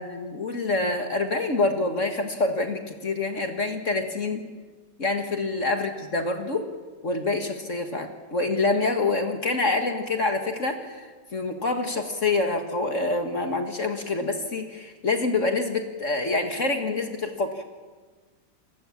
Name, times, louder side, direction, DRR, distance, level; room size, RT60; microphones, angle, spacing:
voice 1, 0.0-4.4 5.0-6.7 7.0-11.0 11.3-17.6, left 3 dB, 45° left, 5 dB, 2.0 m, -26 dB
28.0 x 19.5 x 7.4 m, 1.4 s
omnidirectional pair, 1.9 m